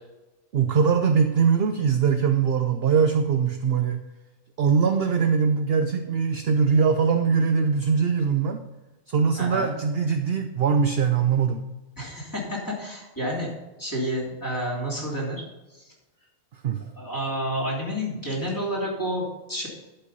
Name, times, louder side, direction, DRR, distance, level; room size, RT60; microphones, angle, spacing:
voice 1, 0.5-4.0 4.6-8.6 9.1-11.6 16.6-16.8, right 6 dB, 55° right, 7 dB, 0.8 m, -22 dB
voice 2, 9.4-9.8 12.0-13.5 13.8-15.4 15.7-15.9 17.0-19.7, equal, 15° left, -4 dB, 3.0 m, -30 dB
11.5 x 5.7 x 5.4 m, 1.1 s
omnidirectional pair, 1.4 m